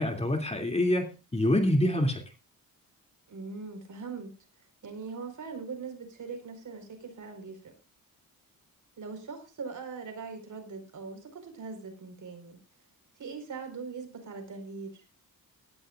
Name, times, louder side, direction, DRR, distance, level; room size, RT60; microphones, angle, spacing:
voice 1, 0.0-2.2, left 1 dB, 15° left, 3 dB, 2.8 m, -26 dB
voice 2, 3.3-4.3 4.8-7.7 9.0-12.6 13.2-15.0, right 4 dB, 55° right, 5 dB, 4.9 m, -41 dB
19.0 x 14.0 x 2.5 m, 0.31 s
cardioid pair, 80°, 36 cm